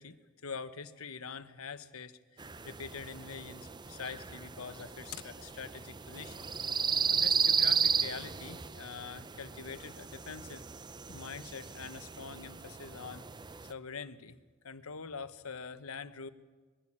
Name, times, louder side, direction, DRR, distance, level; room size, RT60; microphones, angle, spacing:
voice 1, 0.4-6.6 7.1-10.6 11.1-13.2 13.7-14.4 14.6-16.3, left 5 dB, 80° left, 11 dB, 1.1 m, -44 dB
sound 1, 2.4-13.7, right 6 dB, 20° right, 0.5 m, -34 dB
21.5 x 15.5 x 8.8 m, 1.4 s
head